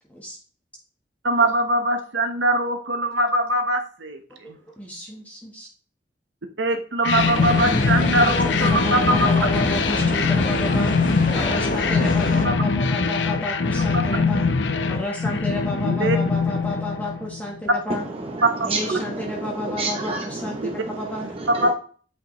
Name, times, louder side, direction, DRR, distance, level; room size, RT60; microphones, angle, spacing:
voice 1, 1.2-4.2 4.5-4.6 6.6-9.3 12.4-12.6 15.8-16.2 21.5-21.7, right 1 dB, 85° right, 6 dB, 1.1 m, -22 dB
voice 2, 4.3-5.7 7.6-14.5 14.9-18.0 18.6-21.3, left 1 dB, 10° left, -2 dB, 1.3 m, -31 dB
sound 1, 7.0-17.6, left 4 dB, 75° left, 0.7 m, -22 dB
sound 2, 7.2-12.5, left 1 dB, 45° left, 0.9 m, -27 dB
voice 3, 17.9-21.7, right 2 dB, 30° right, 2 dB, 0.8 m, -30 dB
8.9 x 5.3 x 3.2 m, 0.43 s
head